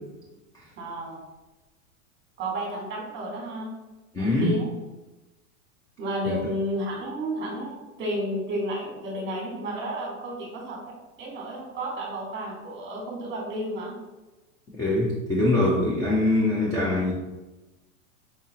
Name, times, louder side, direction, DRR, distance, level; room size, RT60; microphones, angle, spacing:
voice 1, 0.8-1.2 2.4-3.7 4.2-4.7 6.0-13.9, right 1 dB, 25° right, -1 dB, 1.4 m, -32 dB
voice 2, 4.1-4.6 6.3-6.4 14.7-17.1, left 2 dB, 10° left, -5 dB, 0.4 m, -23 dB
4.9 x 2.5 x 2.8 m, 1.1 s
hypercardioid pair, 115°, 42 cm